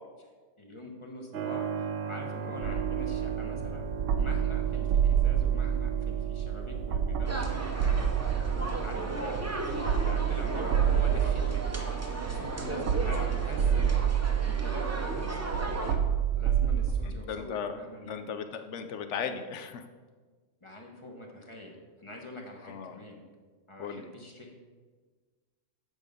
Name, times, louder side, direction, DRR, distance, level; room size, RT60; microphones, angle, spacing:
voice 1, 0.6-3.8 4.2-8.1 8.8-11.9 12.3-14.0 14.4-16.0 16.3-18.2 20.6-23.2 23.7-24.6, left 1 dB, 25° left, 1 dB, 1.0 m, -44 dB
Keyboard (musical), 1.3-13.7, right 7 dB, 60° right, 0.9 m, -39 dB
sound 1, 2.6-17.0, right 8 dB, 85° right, 1.0 m, -28 dB
sound 2, 7.2-15.9, right 2 dB, 20° right, 0.5 m, -36 dB
voice 2, 17.0-17.8 18.0-19.8 22.6-23.0 23.8-24.1, left 7 dB, 75° left, 8 dB, 1.0 m, -37 dB
8.3 x 5.4 x 5.0 m, 1.5 s
omnidirectional pair, 1.3 m